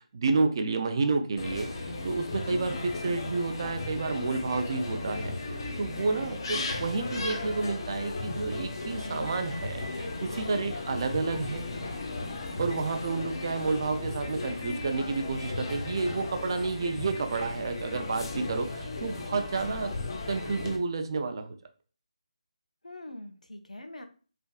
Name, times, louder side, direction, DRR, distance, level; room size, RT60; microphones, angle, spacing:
voice 1, 0.0-11.6 12.6-19.9 20.3-21.6, right 3 dB, 40° right, 7 dB, 0.4 m, -30 dB
sound 1, 1.4-20.8, left 2 dB, 35° left, 0.5 m, -36 dB
voice 2, 19.5-19.9 22.8-24.1, left 1 dB, 80° left, 5 dB, 0.6 m, -43 dB
3.3 x 2.6 x 2.3 m, 0.37 s
figure-of-eight pair, 155°, 4 cm